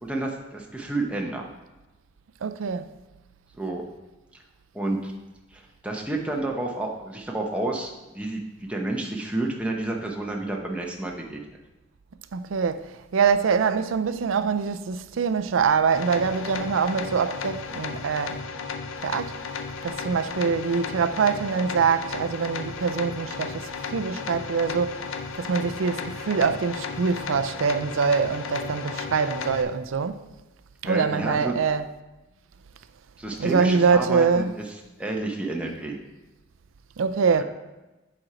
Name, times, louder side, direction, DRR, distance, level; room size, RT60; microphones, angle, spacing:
voice 1, 0.0-1.5 3.5-3.8 4.7-5.1 5.5-8.4 8.7-11.4 30.8-31.6 33.2-34.6 35.0-36.0, right 2 dB, 5° right, 0.8 m, -30 dB
voice 2, 2.4-2.9 12.3-18.4 19.0-19.4 19.8-25.1 25.4-30.2 30.8-31.9 33.4-34.5 37.0-37.4, right 5 dB, 85° right, 0.4 m, -24 dB
sound 1, 15.9-29.6, left 5 dB, 80° left, 0.6 m, -34 dB
7.7 x 4.3 x 4.9 m
head